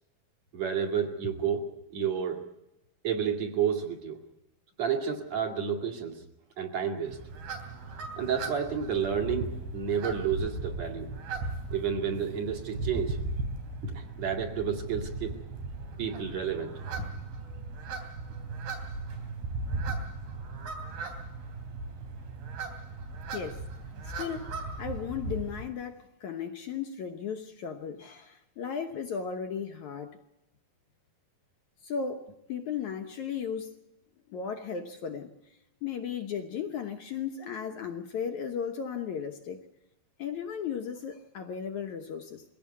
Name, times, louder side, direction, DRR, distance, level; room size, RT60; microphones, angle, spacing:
voice 1, 0.5-1.7 1.9-2.4 3.0-4.2 4.8-6.2 6.6-7.2 8.2-11.1 11.7-13.2 13.8-15.4 16.0-17.1, right 7 dB, 50° right, 3.2 m, -30 dB
sound 1, 7.1-25.6, right 3 dB, 85° right, 5.3 m, -37 dB
voice 2, 24.0-24.5 24.8-30.2 31.8-33.7 34.3-35.3 35.8-39.6 40.2-42.4, left 7 dB, 65° left, 2.1 m, -35 dB
23.0 x 17.0 x 8.4 m
omnidirectional pair, 4.3 m